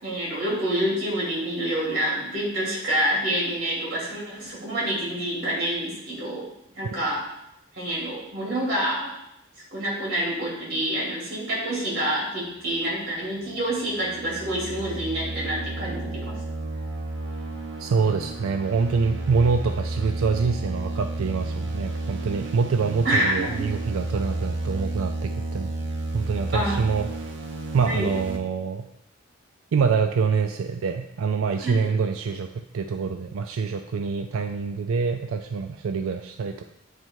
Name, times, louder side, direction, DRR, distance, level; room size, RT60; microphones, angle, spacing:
voice 1, 0.0-6.5 6.8-7.2 7.7-9.1 9.7-16.4 23.0-23.6 26.5-26.8 27.8-28.1 31.6-31.9, right 1 dB, 50° right, -4 dB, 2.6 m, -27 dB
sound 1, 13.2-28.4, right 2 dB, 65° right, 0.8 m, -32 dB
voice 2, 17.8-25.7 26.1-27.3 27.7-28.9 29.7-36.6, right 5 dB, 90° right, 6 dB, 0.4 m, -25 dB
8.7 x 3.3 x 4.6 m, 0.82 s
head